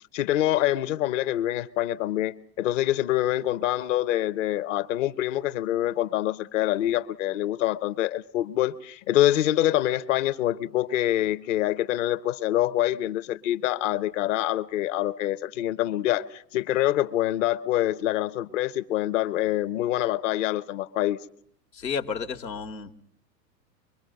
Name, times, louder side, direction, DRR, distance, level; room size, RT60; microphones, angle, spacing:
voice 1, 0.1-21.2, left 13 dB, 50° left, 0.9 m, -25 dB
voice 2, 21.7-23.0, left 6 dB, 90° left, 1.6 m, -32 dB
24.0 x 23.5 x 6.5 m
hypercardioid pair, 105°, 49 cm